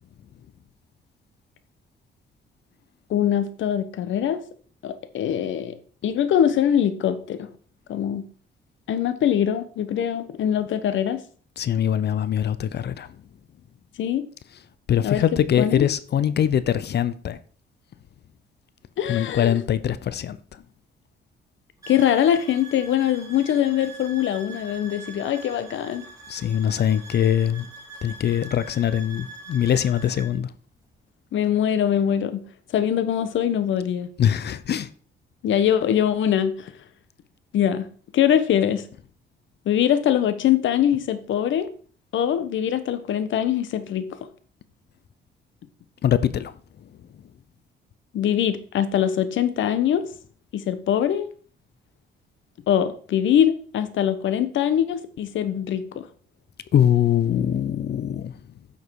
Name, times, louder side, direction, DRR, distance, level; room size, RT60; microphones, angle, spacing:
voice 1, 3.1-4.4 4.8-5.8 6.0-7.5 7.9-8.3 8.9-11.2 14.0-14.3 15.0-15.2 15.6-15.9 19.0-19.6 21.9-26.0 31.3-32.4 32.7-34.1 35.4-36.7 37.5-37.9 38.1-38.8 39.6-41.7 42.1-44.1 48.1-50.1 50.5-51.3 52.7-56.0, left 10 dB, 75° left, 1.2 m, -22 dB
voice 2, 11.6-13.1 14.9-17.4 19.1-20.6 26.3-27.7 28.0-30.5 34.2-34.9 46.0-46.5 56.7-58.3, left 9 dB, 55° left, 0.7 m, -22 dB
sound 1, 21.8-30.3, right 2 dB, 15° right, 4.9 m, -43 dB
10.0 x 6.6 x 4.7 m
cardioid pair, 90°, 20 cm